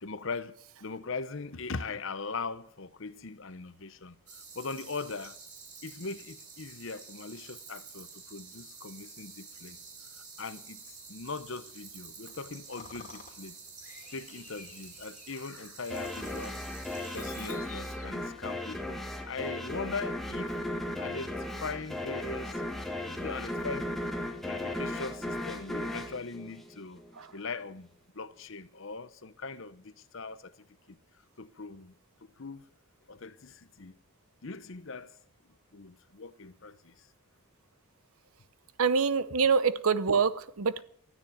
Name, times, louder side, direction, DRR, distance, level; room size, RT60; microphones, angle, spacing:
voice 1, 0.0-4.2 4.5-5.4 5.8-9.8 10.4-13.6 14.1-16.6 17.1-20.6 21.0-22.6 23.1-24.0 24.4-27.0 27.3-27.9 28.1-30.5 30.9-31.0 31.4-31.9 32.4-32.7 33.1-34.0 34.4-35.1 35.7-36.9, left 4 dB, 60° left, 0.8 m, -40 dB
sound 1, 4.3-17.5, right 5 dB, 35° right, 4.6 m, -49 dB
sound 2, 12.2-18.5, left 5 dB, 35° left, 2.7 m, -52 dB
sound 3, 15.9-27.2, left 1 dB, ahead, 1.5 m, -36 dB
voice 2, 38.8-40.8, right 5 dB, 75° right, 0.8 m, -25 dB
13.5 x 9.8 x 9.2 m
head